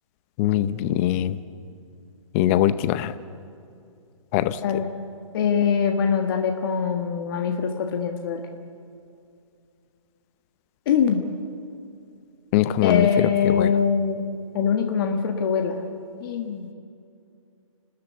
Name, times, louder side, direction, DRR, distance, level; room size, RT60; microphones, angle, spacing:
voice 1, 0.4-1.4 2.3-3.1 4.3-4.6 12.5-13.1 13.4-13.7, left 13 dB, 25° left, 14 dB, 0.7 m, -21 dB
voice 2, 5.3-8.4 10.9-11.2 12.8-15.8 16.2-16.7, left 7 dB, 40° left, 4 dB, 1.6 m, -23 dB
29.5 x 13.5 x 8.2 m, 2.5 s
hypercardioid pair, 140°, 18 cm